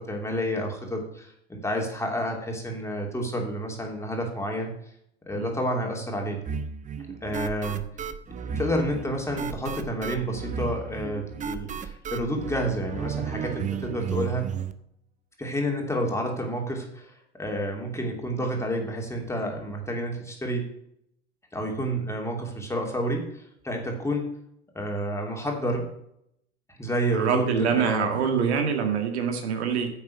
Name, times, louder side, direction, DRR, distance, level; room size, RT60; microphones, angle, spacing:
voice 1, 0.0-4.7 5.3-6.4 7.2-7.8 8.5-14.5 15.4-17.1 17.4-20.7 21.5-24.3 24.7-25.9 26.8-28.1, equal, 10° left, 1 dB, 2.9 m, -29 dB
sound 1, 6.5-14.7, right 7 dB, 20° right, 0.7 m, -34 dB
voice 2, 27.1-29.9, right 6 dB, 70° right, 5 dB, 1.9 m, -25 dB
10.0 x 7.4 x 6.0 m, 0.74 s
hypercardioid pair, 85°, 34 cm